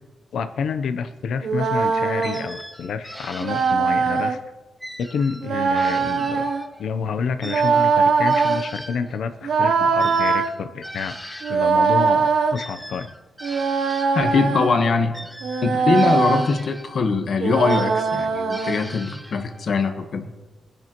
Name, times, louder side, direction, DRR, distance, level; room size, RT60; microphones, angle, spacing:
voice 1, 0.3-4.4 5.0-6.4 6.8-13.1, left 6 dB, 80° left, 0.7 m, -29 dB
sound 1, 1.4-2.5 3.4-4.4 5.4-6.6 7.4-8.7 9.4-10.5 11.4-12.6 13.4-14.8 15.4-16.5 17.4-18.8, right 5 dB, 80° right, 0.9 m, -21 dB
sound 2, 2.2-4.3 4.8-6.9 7.4-11.7 12.5-14.5 15.1-17.1 17.7-19.7, equal, ahead, 0.6 m, -39 dB
voice 2, 14.1-15.3 15.6-20.3, left 4 dB, 55° left, 1.2 m, -22 dB
22.5 x 10.5 x 3.0 m
wide cardioid pair, 160°, 0 cm